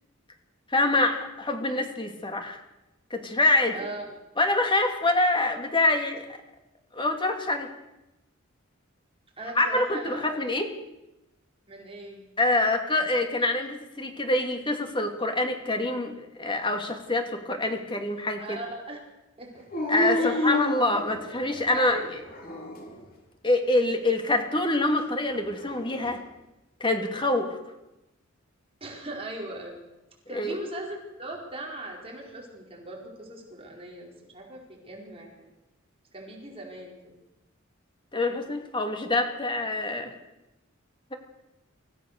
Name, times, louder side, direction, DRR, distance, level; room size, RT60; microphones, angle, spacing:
voice 1, 0.7-2.6 3.1-3.8 4.4-6.4 6.9-7.7 9.6-10.7 12.4-18.6 19.9-22.2 23.4-26.2 26.8-27.6 30.3-30.6 38.1-40.1, left 2 dB, 25° left, 4 dB, 2.6 m, -25 dB
voice 2, 3.7-4.1 9.4-10.3 11.7-12.3 18.4-19.0 19.4-19.8 20.1-20.5 21.5-22.0 28.8-29.9 30.3-35.5 36.1-37.2, right 2 dB, 30° right, -1 dB, 4.7 m, -39 dB
Dog, 19.7-21.6 22.3-23.1 25.3-26.2, left 1 dB, 45° left, 3.3 m, -30 dB
25.0 x 15.5 x 6.8 m, 0.95 s
head